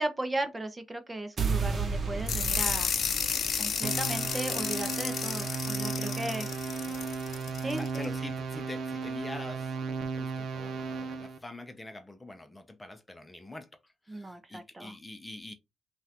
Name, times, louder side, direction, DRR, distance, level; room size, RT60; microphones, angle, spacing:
voice 1, 0.0-2.9 3.6-6.5 7.6-8.1 14.1-14.9, right 1 dB, 20° right, 0.8 m, -36 dB
sound 1, 1.4-7.5, right 5 dB, 45° right, 1.1 m, -36 dB
sound 2, 2.3-8.0, left 7 dB, 55° left, 0.7 m, -32 dB
sound 3, 3.8-11.4, right 4 dB, 70° right, 0.7 m, -35 dB
voice 2, 5.9-6.5 6.9-7.0 7.7-9.8 10.2-15.5, left 2 dB, 15° left, 0.7 m, -45 dB
5.4 x 2.5 x 2.9 m
cardioid pair, 90°, 0 cm